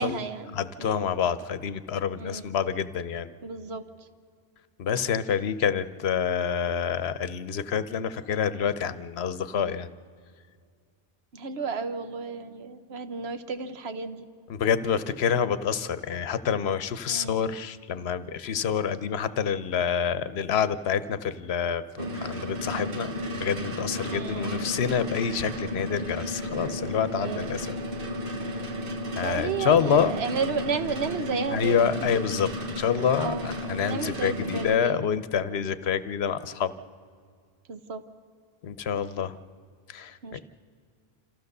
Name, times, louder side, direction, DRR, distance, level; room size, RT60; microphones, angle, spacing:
voice 1, 0.0-1.1 2.2-2.5 3.4-3.8 11.3-14.2 17.1-17.5 24.1-24.6 27.1-27.5 29.2-31.9 33.2-33.5 33.9-35.0 37.7-38.0 40.2-40.4, right 5 dB, 80° right, 10 dB, 1.3 m, -33 dB
voice 2, 0.5-3.3 4.8-9.9 14.5-27.8 29.1-30.2 31.5-36.7 38.6-39.3 39.9-40.4, left 7 dB, 80° left, 14 dB, 1.0 m, -27 dB
sound 1, 22.0-34.8, left 1 dB, 60° right, 1.3 m, -33 dB
26.5 x 14.5 x 6.6 m, 2.1 s
omnidirectional pair, 1.0 m